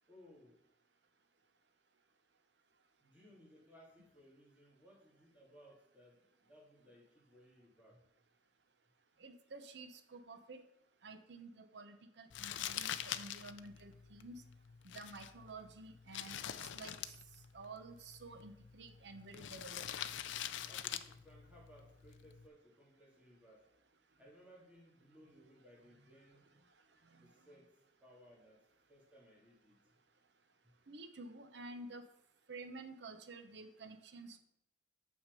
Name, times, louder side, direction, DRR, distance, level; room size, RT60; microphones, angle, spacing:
voice 1, 0.1-0.6 3.0-8.0 20.6-23.6 24.2-26.5 27.2-27.7 28.0-28.6 28.9-29.8, equal, 5° right, -5 dB, 2.4 m, -62 dB
voice 2, 9.2-10.6 11.0-14.4 14.8-16.4 16.7-16.9 17.5-19.9 27.2-27.3 30.9-32.0 32.5-34.4, right 3 dB, 65° right, 8 dB, 0.8 m, -51 dB
Crumpling crinkling, 12.3-22.5, left 10 dB, 75° left, 0.4 m, -45 dB
7.2 x 5.9 x 5.4 m, 0.77 s
head